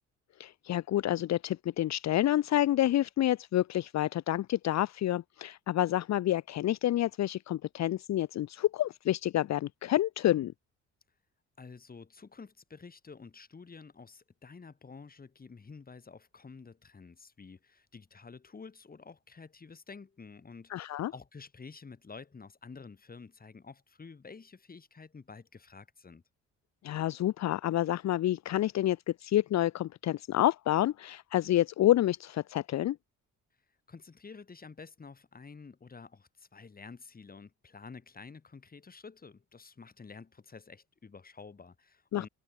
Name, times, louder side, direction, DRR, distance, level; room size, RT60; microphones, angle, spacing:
voice 1, 0.4-10.5 20.7-21.1 26.8-33.0 42.1-42.3, left 13 dB, 65° left, 0.8 m, -28 dB
voice 2, 11.6-26.2 33.9-42.3, left 4 dB, 30° left, 3.0 m, -50 dB
cardioid pair, 90°, 30 cm